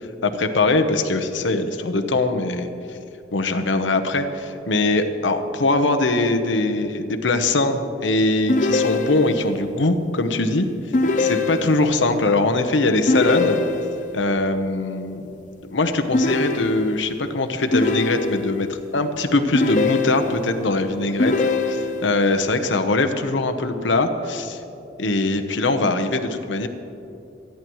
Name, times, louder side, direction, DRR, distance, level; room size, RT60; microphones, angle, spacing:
voice 1, 0.2-2.7 3.3-10.7 11.2-13.6 14.1-15.3 15.6-24.6 25.0-26.7, left 2 dB, 85° left, 6 dB, 1.0 m, -22 dB
sound 1, 8.5-9.5 10.9-12.0 13.1-14.1 16.1-17.1 17.7-18.7 19.5-20.6 21.2-22.2, left 3 dB, 40° left, 0.6 m, -22 dB
25.5 x 10.5 x 3.1 m, 2.7 s
head